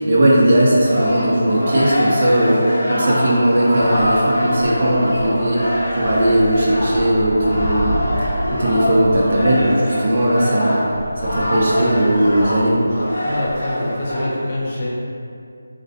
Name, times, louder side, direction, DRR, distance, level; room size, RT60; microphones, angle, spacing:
voice 1, 0.0-8.1 8.5-10.8 11.2-12.9, right 1 dB, 40° right, -6 dB, 0.4 m, -17 dB
sound 1, 0.8-14.3, equal, 85° left, 0.9 m, -24 dB
voice 2, 13.3-14.9, left 1 dB, 25° left, -5 dB, 0.4 m, -24 dB
2.5 x 2.2 x 2.5 m, 2.4 s
figure-of-eight pair, 175°, 0 cm